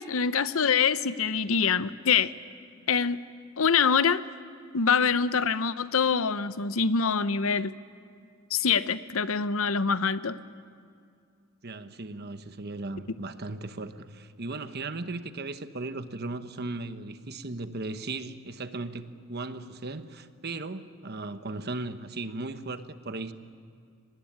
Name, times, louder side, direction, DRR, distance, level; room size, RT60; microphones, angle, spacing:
voice 1, 0.0-2.3 2.9-3.2 3.6-4.2 4.7-7.7 8.5-10.4, left 6 dB, 75° left, 14 dB, 0.8 m, -25 dB
voice 2, 11.6-23.3, right 2 dB, 50° right, 10 dB, 1.1 m, -37 dB
24.0 x 19.0 x 10.0 m, 2.3 s
head